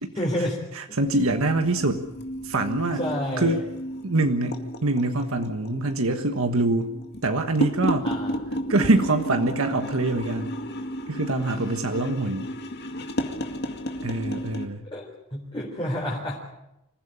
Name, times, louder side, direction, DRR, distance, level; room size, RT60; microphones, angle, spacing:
voice 1, 0.1-0.6 3.0-3.6 8.0-8.3 14.9-16.5, left 1 dB, 25° left, -3 dB, 3.9 m, -29 dB
voice 2, 0.7-2.1 2.4-3.0 3.4-3.6 4.0-6.9 7.2-8.1 8.7-10.5 11.1-12.5 14.0-14.9, right 2 dB, 85° right, 6 dB, 1.5 m, -24 dB
sound 1, 1.1-14.7, equal, 50° left, 2.2 m, -33 dB
26.5 x 15.5 x 8.8 m, 0.88 s
head